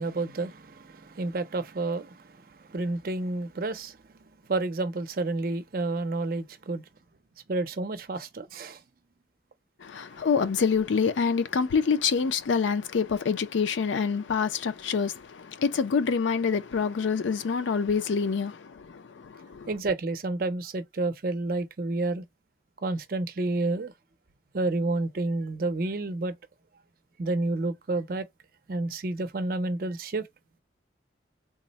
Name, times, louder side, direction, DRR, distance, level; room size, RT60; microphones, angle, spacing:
voice 1, 0.0-2.2 2.7-3.9 4.5-6.8 7.5-8.8 19.7-22.2 22.8-23.9 24.5-26.3 27.2-28.2 28.7-30.2, right 2 dB, 50° right, 0.5 m, -30 dB
voice 2, 9.8-19.7, left 5 dB, 85° left, 0.4 m, -26 dB
3.5 x 2.1 x 4.0 m
head